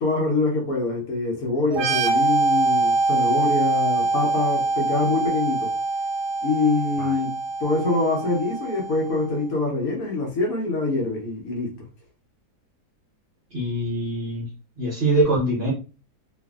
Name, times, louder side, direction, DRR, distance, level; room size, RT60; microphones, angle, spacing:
voice 1, 0.0-5.7 6.4-7.3 7.6-11.7, left 3 dB, 65° left, 1.1 m, -24 dB
sound 1, 1.7-9.2, right 3 dB, 80° right, 1.2 m, -24 dB
voice 2, 13.5-14.5 14.8-15.7, right 2 dB, 50° right, 0.8 m, -23 dB
2.7 x 2.4 x 2.3 m
omnidirectional pair, 1.8 m